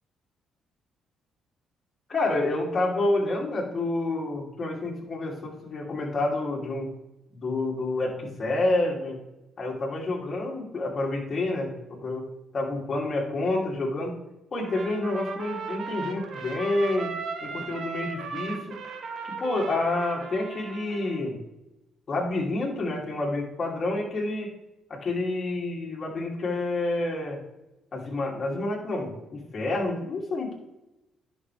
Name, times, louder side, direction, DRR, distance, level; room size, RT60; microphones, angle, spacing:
voice 1, 2.1-6.9 7.3-9.2 9.6-12.3 12.5-14.1 14.5-17.1 17.4-18.8 19.2-21.4 22.1-24.5 24.9-27.4 27.9-30.6, left 2 dB, 40° left, -2 dB, 2.7 m, -28 dB
Trumpet, 14.6-21.2, right 5 dB, 65° right, 1.2 m, -37 dB
10.5 x 6.2 x 3.3 m, 0.94 s
cardioid pair, 90°, 0 cm